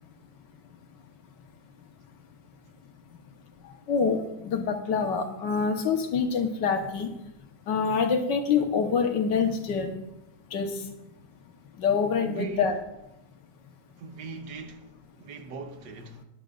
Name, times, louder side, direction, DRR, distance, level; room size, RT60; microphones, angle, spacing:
voice 1, 3.9-7.1 7.7-9.9 10.5-10.7 11.8-12.8, left 5 dB, 85° left, 1.8 m, -26 dB
voice 2, 12.2-12.8 14.0-14.9 15.2-16.2, right 5 dB, 90° right, 1.6 m, -39 dB
17.5 x 10.5 x 2.5 m
omnidirectional pair, 1.8 m